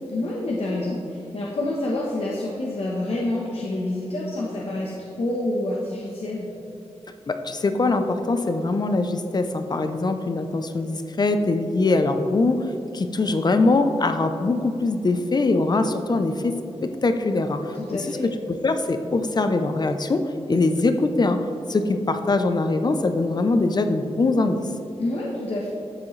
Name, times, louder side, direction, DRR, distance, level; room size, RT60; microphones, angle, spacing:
voice 1, 0.1-6.5 17.7-18.3 25.0-25.7, left 1 dB, 60° left, -4 dB, 1.1 m, -28 dB
voice 2, 7.3-12.7 12.9-16.5 16.8-17.6 17.9-18.2 18.5-20.2 20.5-21.4 21.7-24.6, left 3 dB, 40° left, 8 dB, 0.6 m, -22 dB
11.0 x 7.5 x 3.2 m, 2.9 s
wide cardioid pair, 120°, 11 cm